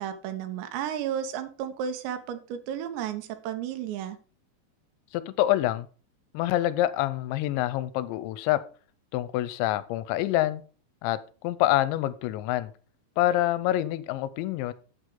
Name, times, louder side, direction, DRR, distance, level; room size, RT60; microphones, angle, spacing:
voice 1, 0.0-4.2, right 9 dB, 80° right, 10 dB, 2.9 m, -33 dB
voice 2, 5.1-5.9 6.3-8.6 9.1-10.6 11.0-12.7 13.2-14.7, left 14 dB, 85° left, 15 dB, 2.8 m, -26 dB
8.9 x 8.1 x 3.7 m, 0.38 s
omnidirectional pair, 5.3 m